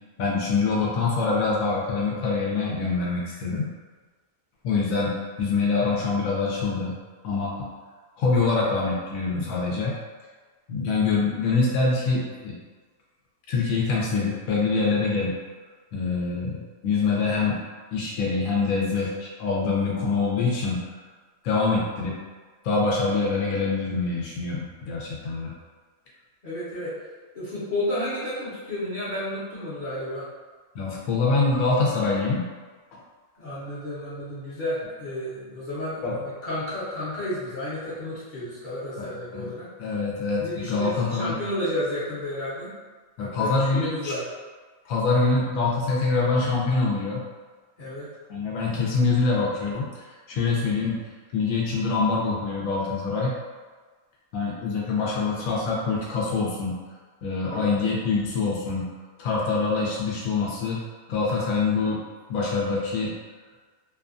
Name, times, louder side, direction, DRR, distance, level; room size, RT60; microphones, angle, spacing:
voice 1, 0.2-3.7 4.6-5.1 5.4-6.9 7.2-7.7 8.2-10.0 10.7-12.5 13.5-15.3 15.9-17.6 17.9-20.8 21.4-22.1 22.6-25.5 30.7-32.4 32.9-33.0 36.0-36.2 39.0-39.1 39.3-39.5 39.8-41.4 43.2-44.1 44.9-47.2 48.3-51.0 51.3-53.4 54.3-56.7 57.2-58.8 59.2-60.8 61.1-62.0 62.3-63.1, left 4 dB, 80° left, -4 dB, 1.0 m, -25 dB
voice 2, 26.4-26.9 27.3-30.2 33.4-39.7 40.4-42.7 43.2-44.2 47.8-48.1 57.5-57.7, left 1 dB, 45° left, -12 dB, 0.8 m, -32 dB
2.7 x 2.2 x 2.5 m, 1.4 s
omnidirectional pair, 1.5 m